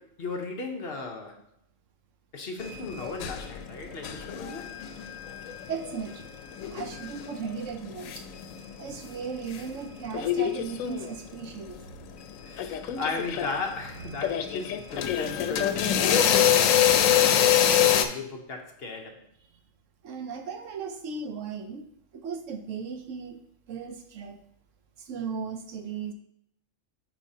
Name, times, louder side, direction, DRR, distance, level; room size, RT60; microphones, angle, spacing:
voice 1, 0.0-1.4 2.3-4.7 12.4-19.2, left 3 dB, 55° left, 1.0 m, -36 dB
sound 1, 2.6-9.7 10.0-11.3 12.2-12.3 12.6-18.0, left 10 dB, 90° left, 1.0 m, -25 dB
voice 2, 5.7-6.3 6.7-8.3 8.8-11.8 14.1-14.2 14.5-14.6 20.0-21.9 22.1-23.4 23.7-24.4 25.1-26.1, right 6 dB, 75° right, 1.1 m, -36 dB
9.0 x 4.5 x 2.8 m
omnidirectional pair, 1.4 m